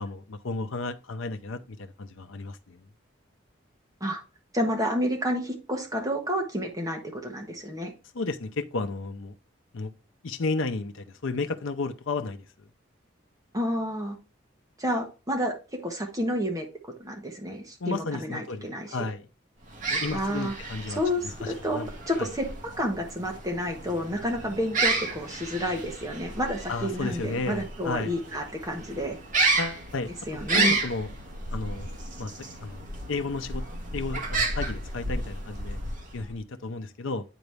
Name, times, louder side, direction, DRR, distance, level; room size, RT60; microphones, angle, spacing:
voice 1, 0.0-2.8 8.1-9.4 9.7-9.9 10.2-12.5 17.8-19.3 19.9-21.0 21.4-21.9 22.2-22.3 26.7-28.1 29.6-30.1 30.5-31.1 31.5-31.9 32.2-32.3 32.6-33.6 33.9-35.8 36.1-37.2, left 3 dB, 90° left, 0.7 m, -33 dB
voice 2, 4.5-7.9 13.5-14.2 14.8-15.6 15.8-16.7 17.0-19.1 20.1-20.5 20.9-29.2 30.3-30.8, equal, 20° right, 1.3 m, -30 dB
sound 1, 19.6-36.4, right 3 dB, 40° right, 1.6 m, -32 dB
9.2 x 4.0 x 3.4 m
head